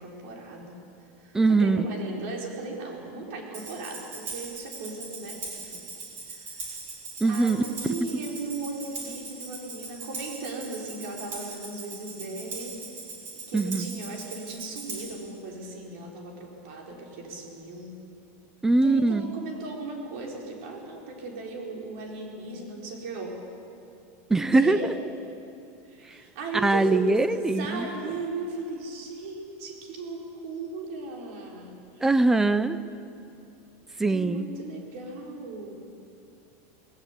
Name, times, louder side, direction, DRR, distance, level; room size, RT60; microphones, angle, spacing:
voice 1, 0.0-5.8 6.3-6.7 7.3-12.8 13.3-18.0 18.8-23.4 24.5-24.9 25.8-32.1 34.1-35.8, right 3 dB, 55° right, 0 dB, 4.4 m, -37 dB
voice 2, 1.3-1.9 7.2-8.0 13.5-14.0 18.6-19.3 24.3-24.8 26.5-27.9 32.0-32.8 34.0-34.4, right 3 dB, 5° right, 13 dB, 0.4 m, -22 dB
Tambourine, 3.5-15.2, right 4 dB, 30° right, 4.2 m, -40 dB
19.0 x 17.5 x 8.4 m, 2.5 s
supercardioid pair, 180°, 8 cm